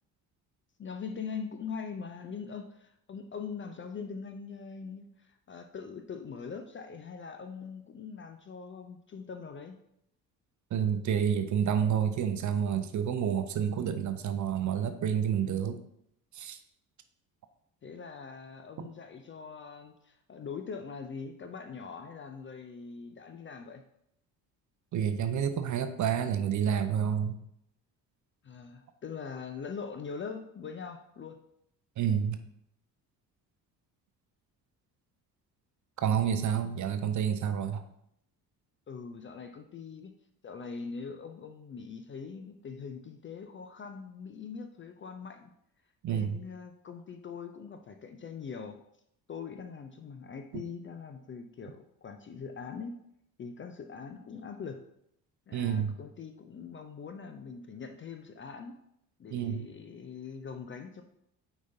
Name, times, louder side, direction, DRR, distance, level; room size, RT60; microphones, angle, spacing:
voice 1, 0.8-9.8 15.4-15.8 17.8-23.8 28.4-31.4 38.9-40.1 40.4-45.5 46.1-48.8 49.3-52.9 53.4-54.8 55.5-58.7 59.2-61.0, left 5 dB, 25° left, 7 dB, 0.5 m, -42 dB
voice 2, 10.7-15.8 16.3-16.6 18.8-18.9 24.9-27.4 32.0-32.4 36.0-37.9 46.0-46.4 55.5-56.0 59.3-59.7, right 8 dB, 35° right, 9 dB, 0.6 m, -29 dB
9.2 x 4.0 x 2.7 m, 0.75 s
figure-of-eight pair, 50°, 50 cm